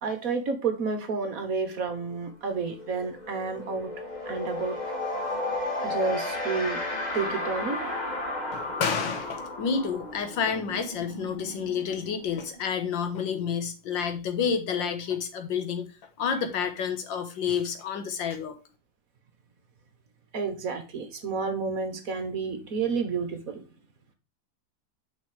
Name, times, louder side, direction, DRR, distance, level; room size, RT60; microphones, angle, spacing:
voice 1, 0.0-3.9 4.2-4.9 5.8-6.8 7.1-7.8 20.3-23.6, right 4 dB, 55° right, 7 dB, 1.5 m, -30 dB
sound 1, 2.0-2.2 2.5-13.0, left 2 dB, 25° left, 1.4 m, -34 dB
voice 2, 8.5-15.9 16.2-18.5, left 6 dB, 90° left, 7 dB, 1.9 m, -29 dB
6.2 x 5.2 x 4.9 m, 0.30 s
omnidirectional pair, 2.0 m